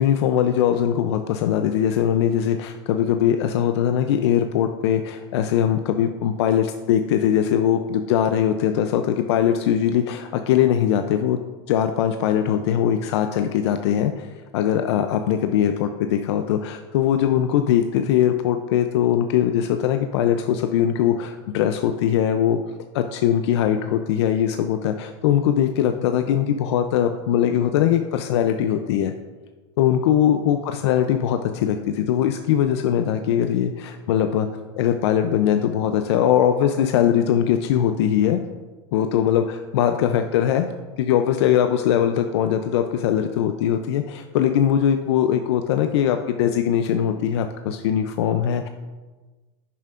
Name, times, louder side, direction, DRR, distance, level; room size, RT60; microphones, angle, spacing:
voice 1, 0.0-11.4 11.7-14.3 14.5-22.6 22.9-29.1 29.8-34.5 34.8-38.4 38.9-40.7 41.0-48.7, left 10 dB, 70° left, 7 dB, 0.5 m, -21 dB
10.0 x 7.4 x 2.5 m, 1.2 s
supercardioid pair, 120°, 15 cm